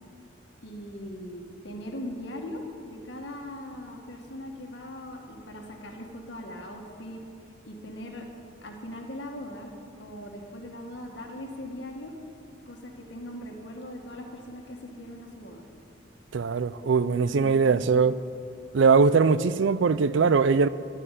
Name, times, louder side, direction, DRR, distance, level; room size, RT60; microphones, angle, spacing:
voice 1, 0.6-7.2 7.6-8.3 8.6-9.7 10.0-12.1 12.7-15.7 17.3-18.1, left 1 dB, 60° left, 1.5 m, -40 dB
voice 2, 16.3-18.1 18.7-20.7, right 5 dB, 70° right, 0.4 m, -21 dB
11.5 x 8.2 x 9.0 m
head